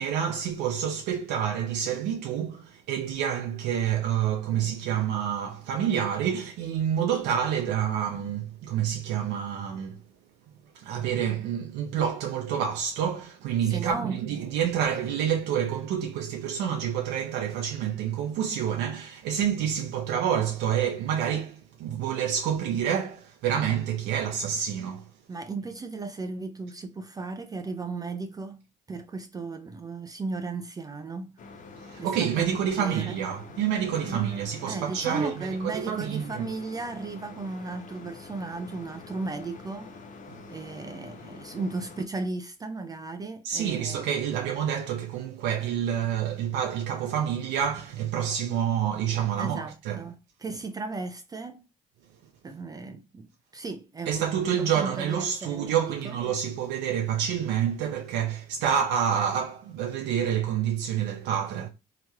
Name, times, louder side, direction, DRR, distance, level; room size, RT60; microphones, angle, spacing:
voice 1, 0.0-10.0 10.7-25.1 31.8-36.5 43.4-50.0 54.1-61.7, right 9 dB, 85° right, 0.6 m, -28 dB
voice 2, 13.6-14.1 25.3-31.3 32.0-32.5 32.8-33.2 34.0-40.0 40.5-44.2 49.4-51.6 52.4-56.2, right 3 dB, 20° right, 0.4 m, -36 dB
sound 1, 31.4-42.1, left 4 dB, 50° left, 0.7 m, -46 dB
3.0 x 2.8 x 2.2 m
cardioid pair, 110°, 17 cm